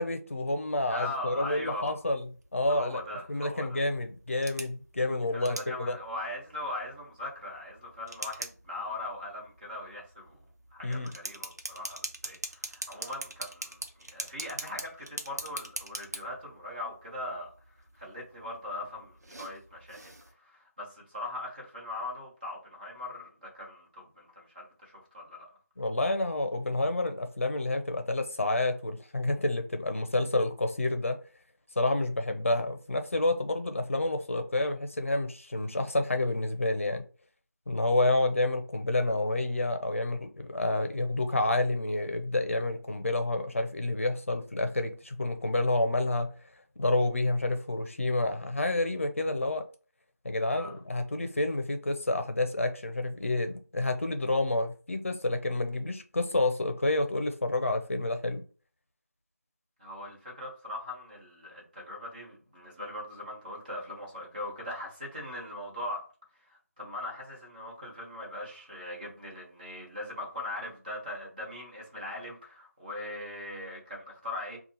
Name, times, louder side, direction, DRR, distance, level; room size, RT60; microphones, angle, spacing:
voice 1, 0.0-2.3 2.5-3.0 3.3-5.9 10.8-11.1 25.8-31.1 31.8-37.0 37.7-46.3 46.8-49.6 50.2-58.4, left 2 dB, 50° left, 0.7 m, -29 dB
voice 2, 0.9-2.0 2.7-3.8 5.3-10.4 10.7-17.5 18.0-20.1 20.4-25.6 50.5-50.8 59.8-66.0 66.5-74.6, left 1 dB, 30° right, 1.5 m, -40 dB
sound 1, 1.3-20.3, right 1 dB, 80° right, 1.0 m, -44 dB
5.1 x 2.4 x 2.9 m
figure-of-eight pair, 175°, 9 cm